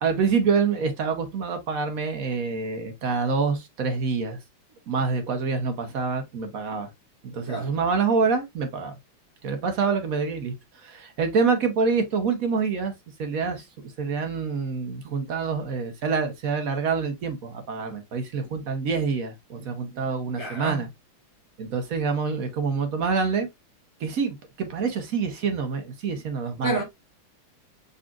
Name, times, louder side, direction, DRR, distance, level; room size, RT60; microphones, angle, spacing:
voice 1, 0.0-4.4 4.9-6.9 7.2-9.0 9.4-12.9 13.2-20.9 21.6-23.5 24.0-26.8, right 5 dB, 55° right, 1.0 m, -26 dB
voice 2, 20.4-20.8 26.6-26.8, right 2 dB, 25° right, 0.6 m, -29 dB
5.2 x 4.1 x 2.4 m
omnidirectional pair, 2.3 m